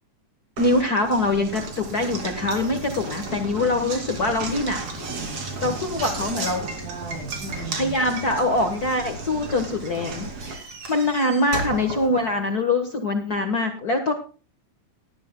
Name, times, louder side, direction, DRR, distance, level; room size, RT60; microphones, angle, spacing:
voice 1, 0.6-4.8 5.6-6.6 7.5-14.1, left 2 dB, 50° left, 5 dB, 1.1 m, -24 dB
Knock, 0.6-12.7, right 3 dB, 50° right, 3.5 m, -34 dB
voice 2, 5.2-8.0, right 3 dB, 90° right, -1 dB, 5.2 m, -38 dB
18.5 x 12.0 x 2.2 m, 0.37 s
omnidirectional pair, 3.5 m